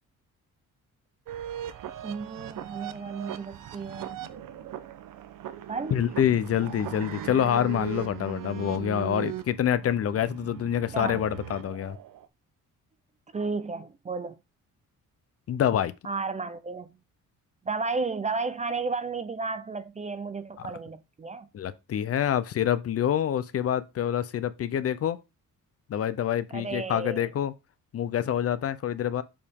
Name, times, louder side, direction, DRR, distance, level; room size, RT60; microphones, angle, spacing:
sound 1, 1.3-12.3, right 11 dB, 85° right, 0.8 m, -39 dB
voice 1, 2.0-4.2 5.7-6.0 10.9-11.3 13.3-14.4 16.0-16.9 17.6-21.5 26.5-27.3, right 4 dB, 20° right, 0.4 m, -33 dB
voice 2, 5.9-12.0 15.5-15.9 21.5-25.2 25.9-27.5 27.9-29.2, left 10 dB, 50° left, 0.5 m, -26 dB
7.0 x 4.9 x 3.5 m
wide cardioid pair, 165°, 32 cm